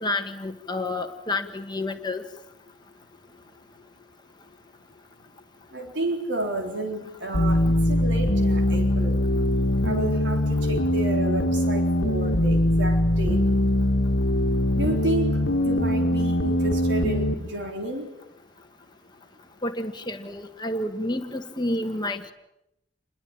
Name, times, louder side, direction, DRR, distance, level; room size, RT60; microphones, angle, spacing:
voice 1, 0.0-2.2 19.6-22.3, left 2 dB, 25° left, 5 dB, 1.6 m, -29 dB
voice 2, 5.7-9.2 9.8-13.5 14.7-18.1, right 1 dB, 75° right, 3 dB, 3.9 m, -31 dB
sound 1, 7.3-17.3, left 1 dB, 90° left, 1.6 m, -22 dB
28.5 x 22.5 x 8.9 m, 0.84 s
head